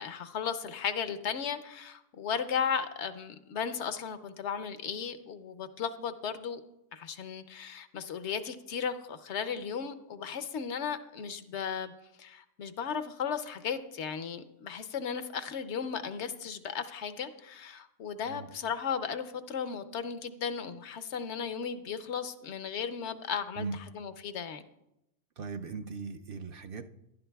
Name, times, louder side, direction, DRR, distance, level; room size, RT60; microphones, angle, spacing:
voice 1, 0.0-6.6 6.9-11.9 12.2-24.6, left 7 dB, 70° left, 0.9 m, -35 dB
voice 2, 25.4-26.9, right 4 dB, 60° right, 0.6 m, -39 dB
14.5 x 11.0 x 2.3 m
omnidirectional pair, 1.2 m